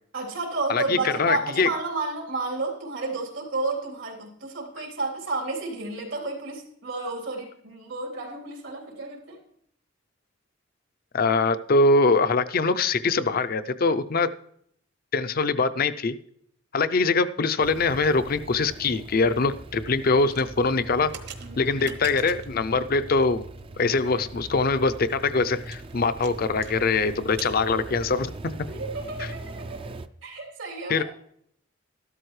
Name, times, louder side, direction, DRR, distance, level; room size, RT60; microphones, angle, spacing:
voice 1, 0.1-9.4 21.4-22.0 28.7-29.9 30.2-31.0, right 3 dB, 85° right, -1 dB, 3.3 m, -31 dB
voice 2, 0.7-1.7 11.1-14.3 15.1-16.2 16.7-21.1 21.6-23.4 23.8-28.3 29.2-29.3 30.9-31.0, left 3 dB, 50° left, 12 dB, 0.5 m, -23 dB
sound 1, 17.6-30.1, right 2 dB, 30° right, 0.4 m, -41 dB
sound 2, 20.2-22.6 23.2-23.6 23.9-24.0 24.3-24.4 24.8-26.8 27.0-27.6, right 7 dB, 60° right, 1.3 m, -44 dB
13.5 x 12.5 x 3.2 m, 0.69 s
head